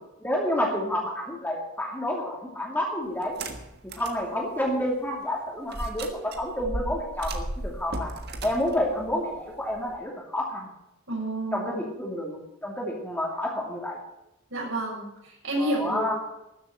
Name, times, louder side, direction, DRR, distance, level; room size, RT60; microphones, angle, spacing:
voice 1, 0.2-3.4 4.0-8.1 8.4-10.7 11.5-14.0 15.6-16.1, left 1 dB, 10° left, -1 dB, 2.5 m, -29 dB
sound 1, 3.2-4.2 4.7-4.8 5.7-10.0, right 1 dB, 50° right, 1.5 m, -35 dB
voice 2, 11.1-11.7 14.5-16.1, right 1 dB, 65° right, -3 dB, 6.5 m, -30 dB
13.5 x 7.5 x 9.1 m, 0.88 s
head